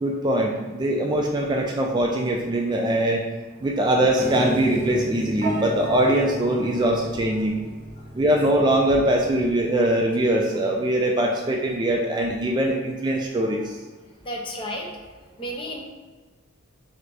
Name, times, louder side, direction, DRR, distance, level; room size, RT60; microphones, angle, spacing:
voice 1, 0.0-3.2 3.6-7.6 8.1-13.7, right 1 dB, 20° right, 0 dB, 0.3 m, -22 dB
Piano, 4.2-10.4, right 1 dB, 40° right, 0.8 m, -34 dB
voice 2, 14.2-15.0 15.4-15.8, equal, 25° left, 0 dB, 0.6 m, -33 dB
3.5 x 3.2 x 3.8 m, 1.3 s
head